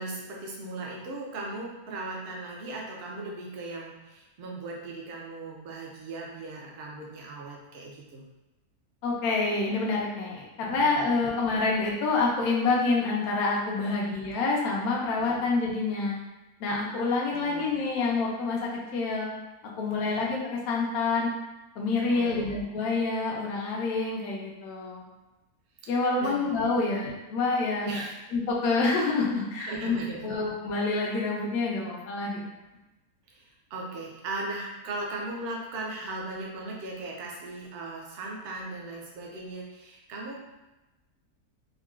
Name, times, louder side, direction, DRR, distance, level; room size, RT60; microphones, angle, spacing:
voice 1, 0.0-8.2 10.6-10.9 13.8-14.0 15.2-15.4 17.3-17.7 19.9-20.2 22.1-22.5 25.8-26.4 26.8-27.1 27.8-28.1 29.6-30.4 33.3-40.4, right 2 dB, 65° right, -1 dB, 0.6 m, -38 dB
voice 2, 9.0-16.2 16.6-19.3 19.8-21.3 21.8-25.0 25.9-28.0 28.3-30.0 30.2-32.4, left 3 dB, 75° left, -3 dB, 1.0 m, -27 dB
3.7 x 2.1 x 2.3 m, 1.0 s
omnidirectional pair, 1.7 m